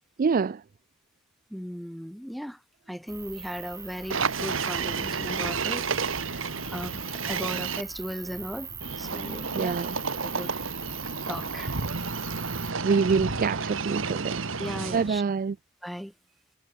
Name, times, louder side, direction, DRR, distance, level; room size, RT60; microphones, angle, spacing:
voice 1, 0.2-0.6 9.5-9.9 12.8-14.5 14.9-15.6, right 5 dB, 40° right, 0.4 m, -25 dB
voice 2, 1.5-2.6 2.9-8.7 9.0-9.8 10.2-10.5 11.3-11.8 14.6-15.2 15.8-16.1, equal, ahead, 2.9 m, -37 dB
sound 1, 3.1-12.7, right 6 dB, 15° right, 1.5 m, -41 dB
sound 2, 3.5-8.8, left 2 dB, 65° left, 4.2 m, -52 dB
sound 3, 4.1-7.8 8.8-15.2, right 5 dB, 70° right, 1.6 m, -31 dB
head